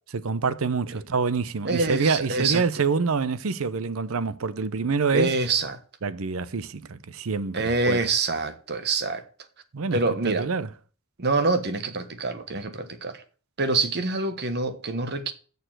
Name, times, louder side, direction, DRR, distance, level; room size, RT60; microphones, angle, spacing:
voice 1, 0.1-5.3 6.0-8.0 9.7-10.7, right 5 dB, 70° right, 0.7 m, -26 dB
voice 2, 1.6-2.6 5.1-5.8 7.5-9.2 9.9-10.5 11.2-13.2 13.6-15.3, right 3 dB, 50° right, 1.2 m, -26 dB
6.8 x 6.7 x 7.6 m
head